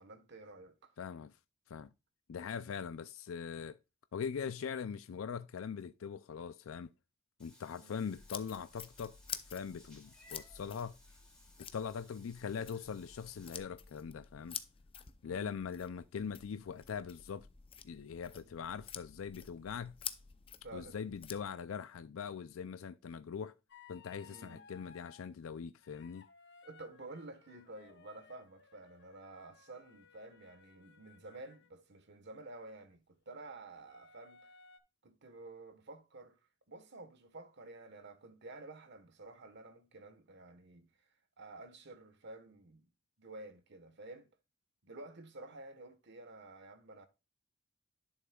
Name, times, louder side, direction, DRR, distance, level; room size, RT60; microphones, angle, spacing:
voice 1, 0.0-0.9 7.8-8.1 15.2-15.6 18.4-18.5 20.6-21.0 24.2-24.7 26.6-34.5 35.0-36.4 36.7-40.9 41.4-42.9 43.2-44.3 44.8-47.1, right 2 dB, 60° right, 1.3 m, -51 dB
voice 2, 1.0-1.3 1.7-1.9 2.3-3.8 4.1-6.9 7.4-9.2 9.5-10.9 11.7-14.6 15.2-17.5 17.8-19.9 20.7-23.5 23.9-26.2, left 6 dB, 90° left, 0.4 m, -41 dB
Meow / Water / Bathtub (filling or washing), 7.4-13.6, left 1 dB, 5° left, 2.5 m, -63 dB
sound 1, 8.2-21.4, left 8 dB, 25° left, 0.6 m, -49 dB
sound 2, 23.7-25.3 25.8-31.7 33.9-34.8, left 5 dB, 60° left, 1.0 m, -61 dB
11.0 x 6.4 x 2.3 m
head